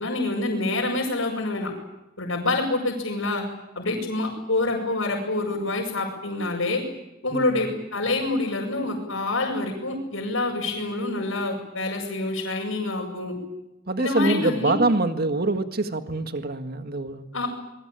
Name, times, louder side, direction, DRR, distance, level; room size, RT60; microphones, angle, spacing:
voice 1, 0.0-1.7 2.2-3.4 3.7-6.8 7.2-13.3 14.0-14.8 17.3-17.5, left 2 dB, 75° left, -4 dB, 6.5 m, -26 dB
voice 2, 7.3-7.7 13.9-17.3, right 2 dB, 45° right, 8 dB, 1.8 m, -25 dB
26.5 x 22.5 x 9.0 m, 0.94 s
head